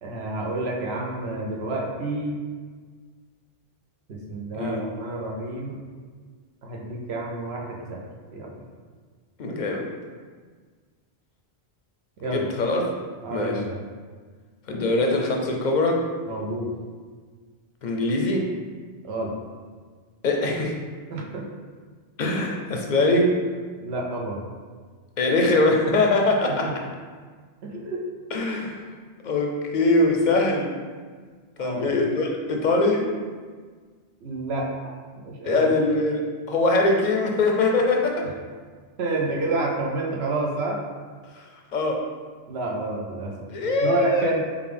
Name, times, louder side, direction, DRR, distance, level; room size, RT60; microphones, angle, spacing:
voice 1, 0.0-2.4 4.1-5.8 6.6-8.0 8.3-8.5 12.2-12.5 13.2-13.8 16.3-16.7 19.0-19.4 21.1-21.5 23.8-24.4 26.6-26.7 27.6-28.0 31.6-31.9 34.2-35.7 39.0-40.8 42.5-43.3 43.6-44.4, right 2 dB, 85° right, -1 dB, 1.0 m, -29 dB
voice 2, 9.4-9.9 12.2-12.8 13.3-13.6 14.7-16.1 17.8-18.5 20.2-20.7 22.2-23.3 25.2-26.7 28.3-28.8 29.2-30.7 31.6-33.1 35.4-38.3 41.3-41.5 41.7-42.0 43.5-44.3, left 2 dB, 55° left, 1 dB, 0.5 m, -22 dB
5.0 x 2.4 x 3.3 m, 1.5 s
omnidirectional pair, 1.1 m